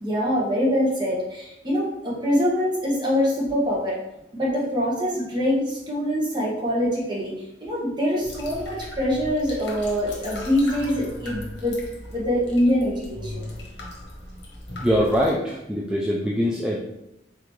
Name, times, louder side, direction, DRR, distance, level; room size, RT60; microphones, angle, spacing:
voice 1, 0.0-4.0 4.3-7.3 7.6-11.8 12.1-13.5, equal, 25° right, -4 dB, 1.1 m, -24 dB
sound 1, 8.2-15.3, left 1 dB, 80° left, 1.1 m, -38 dB
voice 2, 14.8-16.8, equal, 5° right, -3 dB, 0.3 m, -23 dB
3.7 x 3.5 x 3.1 m, 0.88 s
head